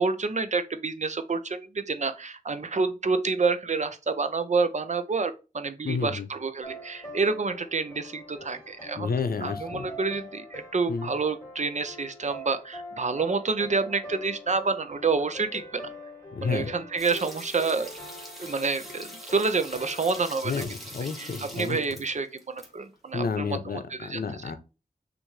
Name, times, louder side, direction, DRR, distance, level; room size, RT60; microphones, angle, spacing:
voice 1, 0.0-9.1 9.4-15.9 16.4-17.9 18.4-20.6 21.2-24.2, right 4 dB, 50° right, 0.6 m, -28 dB
voice 2, 5.8-6.3 9.0-9.9 10.9-11.1 16.3-16.7 20.4-21.8 23.1-24.6, left 5 dB, 80° left, 0.7 m, -30 dB
sound 1, 6.6-20.7, left 1 dB, 25° left, 2.6 m, -44 dB
sound 2, 17.0-22.7 22.9-23.0, equal, ahead, 1.6 m, -43 dB
6.4 x 2.6 x 3.1 m
wide cardioid pair, 90°, 15 cm